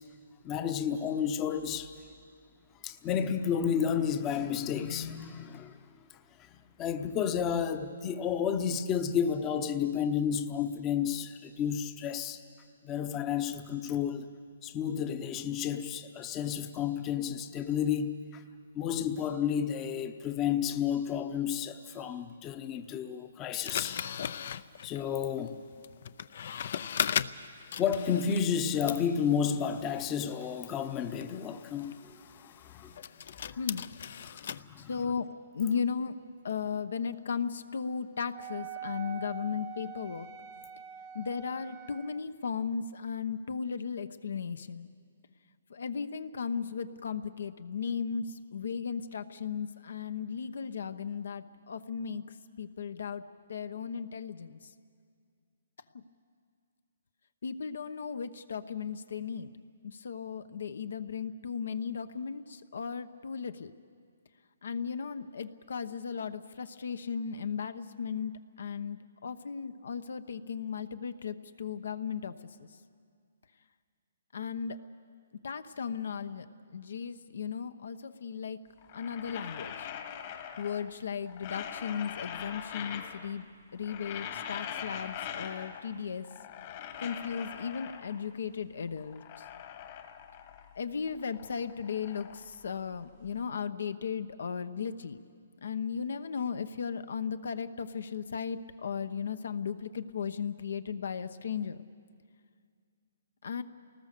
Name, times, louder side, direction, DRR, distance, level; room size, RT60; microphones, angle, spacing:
voice 1, 0.4-1.9 2.8-5.8 6.4-12.4 12.8-14.3 14.6-18.4 18.7-24.0 24.8-25.6 27.8-33.0 33.5-33.6 34.2-34.9, left 8 dB, 20° left, 8 dB, 0.8 m, -31 dB
sound 1, 23.7-28.6 28.9-34.6, left 8 dB, 55° left, 0.6 m, -38 dB
voice 2, 33.6-33.9 34.8-35.3 35.5-36.1 36.4-40.3 41.1-44.9 45.7-52.2 52.6-53.2 53.5-54.6 55.9-56.0 57.4-59.5 59.8-63.7 64.6-68.3 68.6-72.3 72.6-72.7 74.3-74.8 75.4-76.5 76.7-78.6 78.9-79.9 80.6-83.5 83.7-86.3 87.0-89.4 90.8-95.2 95.6-101.8 103.4-103.6, left 6 dB, 75° left, 11 dB, 1.0 m, -36 dB
Wind instrument woodwind instrument, 38.3-42.2, right 7 dB, 25° right, 0.8 m, -44 dB
sound 2, 78.8-81.0 81.3-83.4 83.7-86.0 86.2-88.3 88.8-90.8 91.1-93.3, left 9 dB, 35° left, 1.5 m, -42 dB
29.0 x 19.5 x 6.8 m, 2.2 s
hypercardioid pair, 160°, 0 cm